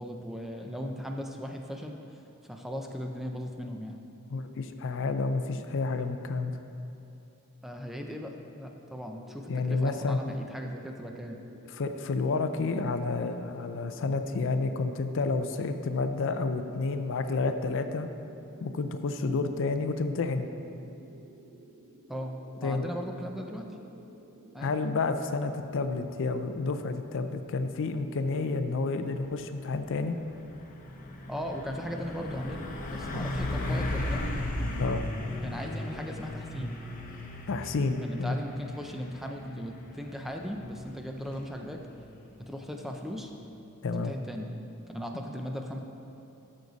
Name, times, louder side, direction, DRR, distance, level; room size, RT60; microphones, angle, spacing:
voice 1, 0.0-2.0 2.4-4.0 7.6-11.4 19.2-19.4 22.1-23.7 24.5-24.7 31.3-34.2 35.4-36.8 38.0-41.8 42.4-43.3 43.9-44.5 44.9-45.8, equal, ahead, 2 dB, 0.5 m, -38 dB
voice 2, 4.3-6.6 9.5-10.2 11.7-18.1 18.6-20.5 22.6-22.9 24.6-30.2 33.1-33.3 34.8-35.0 37.5-38.4 43.8-44.1, left 3 dB, 60° left, 8 dB, 0.5 m, -30 dB
sound 1, 9.1-25.5, right 1 dB, 70° right, 0.9 m, -54 dB
Truck, 29.2-43.5, left 1 dB, 40° left, 0.9 m, -37 dB
13.0 x 6.4 x 4.0 m, 2.9 s
head